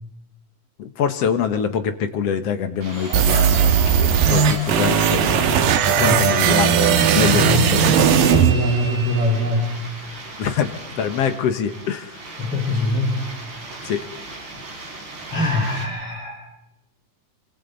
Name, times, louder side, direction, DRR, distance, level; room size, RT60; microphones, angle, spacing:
voice 1, 0.8-5.2 5.9-7.9 10.4-12.2 13.8-14.0, left 7 dB, 60° left, 9 dB, 1.9 m, -24 dB
sound 1, 2.8-15.9, right 2 dB, 35° right, 4.5 m, -38 dB
Dog, 2.9-7.9, right 1 dB, 10° left, 7.9 m, -33 dB
sound 2, 3.1-9.2, right 7 dB, 85° right, 2.8 m, -17 dB
voice 2, 6.0-6.3 7.2-7.7 8.3-9.7 12.4-13.2 15.3-16.4, left 1 dB, 45° left, -1 dB, 5.1 m, -23 dB
27.0 x 25.5 x 4.0 m, 0.84 s
omnidirectional pair, 3.7 m